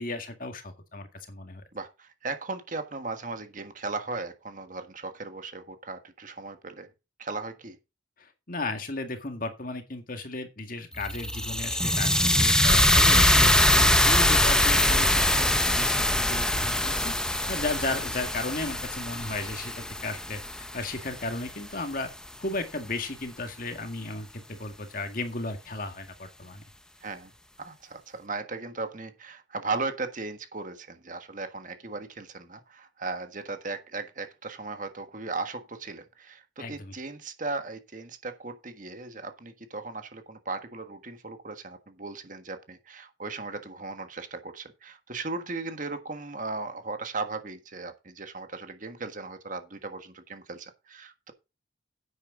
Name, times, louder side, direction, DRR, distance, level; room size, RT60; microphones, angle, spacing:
voice 1, 0.0-1.6 8.2-22.1 22.4-26.6 36.6-36.9, left 2 dB, 45° left, 1.9 m, -35 dB
voice 2, 1.7-6.9 7.2-7.8 27.0-27.3 27.6-51.3, right 3 dB, 40° right, 1.4 m, -37 dB
sound 1, 11.0-21.1, left 1 dB, 5° left, 0.8 m, -23 dB
10.5 x 8.6 x 3.8 m
head